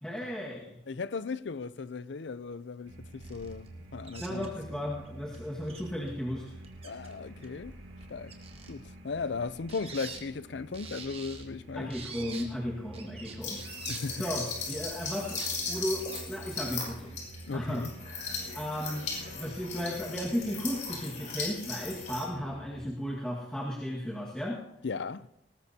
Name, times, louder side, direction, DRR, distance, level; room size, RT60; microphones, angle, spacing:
voice 1, 0.0-0.8 4.2-6.5 11.8-13.6 14.2-15.4 15.7-17.2 17.5-17.9 18.5-24.6, equal, 5° left, 1.7 m, -35 dB
voice 2, 0.9-4.5 6.8-7.7 8.1-8.3 8.7-11.9 13.9-14.2 17.5-17.9 24.8-25.3, left 4 dB, 70° left, 0.5 m, -37 dB
sound 1, 2.9-22.8, right 1 dB, 90° right, 2.9 m, -49 dB
sound 2, 3.2-3.7 4.0-4.5 5.0-5.1 5.3-5.4 5.7-6.1 6.4-7.1 7.4-8.7 9.5-10.2 10.7-11.5 11.9-12.4 12.9-14.0 14.9-15.5 16.0-16.2 16.5-16.7, right 5 dB, 30° right, 1.9 m, -45 dB
sound 3, 13.4-22.3, left 4 dB, 40° left, 6.3 m, -37 dB
20.0 x 19.0 x 2.8 m
head